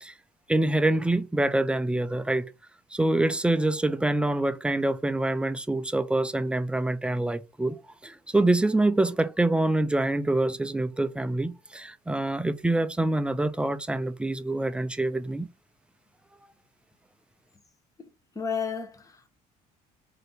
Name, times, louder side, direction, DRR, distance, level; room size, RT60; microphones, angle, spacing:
voice 1, 0.5-2.5 2.9-15.5, right 2 dB, 5° right, 0.4 m, -26 dB
voice 2, 18.3-19.3, left 6 dB, 20° left, 1.1 m, -32 dB
3.2 x 2.8 x 3.9 m
cardioid pair, 100°, 17 cm